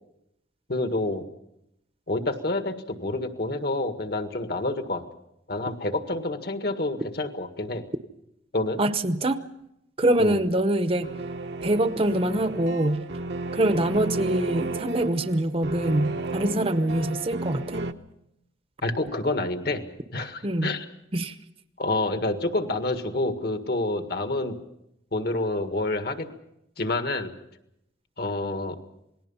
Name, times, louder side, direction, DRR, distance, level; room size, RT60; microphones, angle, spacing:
voice 1, 0.7-1.3 2.1-5.0 5.5-7.9 8.5-8.8 10.2-10.4 18.8-19.8 20.1-20.9 21.8-24.6 25.1-26.3 26.8-27.3 28.2-28.8, left 2 dB, 55° left, 7 dB, 1.8 m, -28 dB
voice 2, 8.8-9.4 10.0-11.1 11.6-13.0 13.5-17.8 20.4-20.7 21.1-21.3, right 1 dB, 30° right, 10 dB, 0.9 m, -24 dB
sound 1, 11.0-17.9, right 2 dB, 60° right, 1.0 m, -33 dB
28.0 x 19.5 x 5.7 m, 0.81 s
head